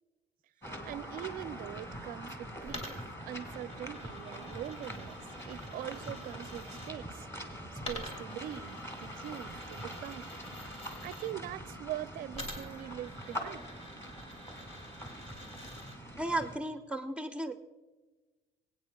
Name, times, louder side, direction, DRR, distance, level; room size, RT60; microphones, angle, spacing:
sound 1, 0.6-16.6, equal, 15° left, 2.3 m, -44 dB
voice 1, 0.6-10.3 10.8-13.7, right 12 dB, 55° right, 0.4 m, -43 dB
Coin (dropping), 2.6-6.9 7.8-11.3 12.3-16.0, left 1 dB, 40° left, 2.9 m, -48 dB
voice 2, 16.2-17.5, right 1 dB, 5° right, 0.6 m, -34 dB
21.5 x 9.2 x 2.3 m
cardioid pair, 110°, 17 cm